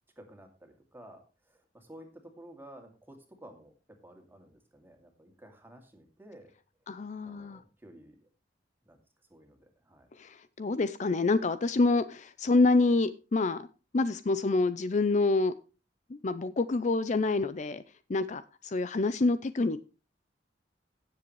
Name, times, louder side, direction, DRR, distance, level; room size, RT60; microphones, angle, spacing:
voice 1, 0.2-3.7 4.0-6.5 7.2-8.3 8.9-9.0 9.3-10.1, right 1 dB, 10° right, 3 dB, 2.5 m, -53 dB
voice 2, 6.9-7.6 10.2-13.7 13.9-15.5 16.1-17.8 18.1-19.8, left 3 dB, 40° left, 14 dB, 0.5 m, -27 dB
16.5 x 7.6 x 3.1 m, 0.32 s
head